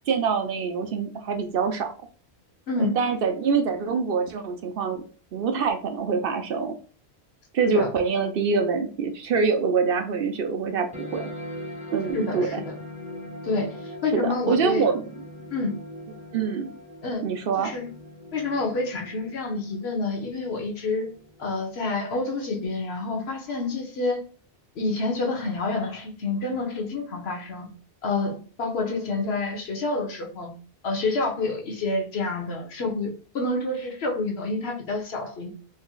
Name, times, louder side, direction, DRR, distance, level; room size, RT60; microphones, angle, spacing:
voice 1, 0.1-1.9 2.8-5.0 5.3-6.7 7.5-11.3 11.9-12.6 14.1-15.0 16.3-16.7 17.2-17.7, right 5 dB, 65° right, 0.7 m, -25 dB
voice 2, 2.7-3.0 7.6-7.9 12.1-12.7 13.4-14.8 15.5-15.7 17.0-17.2 17.6-17.9 18.3-21.1 21.4-24.2 24.8-27.7 28.0-30.6 30.8-35.5, left 3 dB, 70° left, 1.1 m, -28 dB
sound 1, 10.9-21.9, left 1 dB, 5° right, 0.9 m, -41 dB
4.0 x 2.8 x 2.2 m
omnidirectional pair, 1.1 m